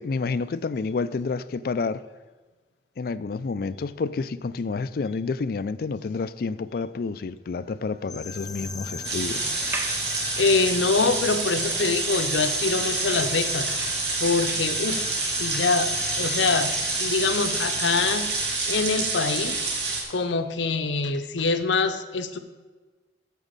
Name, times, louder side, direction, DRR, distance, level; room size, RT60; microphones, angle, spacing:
voice 1, 0.0-2.0 3.0-9.5, left 4 dB, 55° left, 0.4 m, -29 dB
sound 1, 8.0-18.6, left 4 dB, 20° left, 0.7 m, -36 dB
sound 2, 9.0-20.0, right 3 dB, 70° right, 2.2 m, -28 dB
sound 3, 9.5-15.5, right 2 dB, 10° right, 1.0 m, -40 dB
voice 2, 10.4-13.7 14.2-18.4 18.7-19.6 20.1-22.4, left 4 dB, 85° left, 0.8 m, -25 dB
9.1 x 7.2 x 6.7 m
head